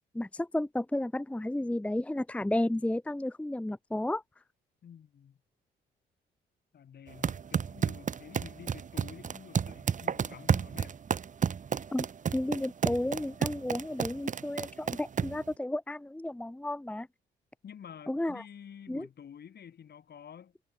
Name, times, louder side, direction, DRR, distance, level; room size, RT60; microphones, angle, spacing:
voice 1, 0.1-4.2 11.9-12.1 12.3-17.1 18.1-18.4 18.9-19.1, left 1 dB, 5° left, 0.7 m, -32 dB
voice 2, 4.8-5.4 6.7-11.0 17.6-20.5, left 8 dB, 55° left, 3.5 m, -49 dB
sound 1, 7.1-15.5, right 7 dB, 40° right, 1.1 m, -32 dB
cardioid pair, 90°, 20 cm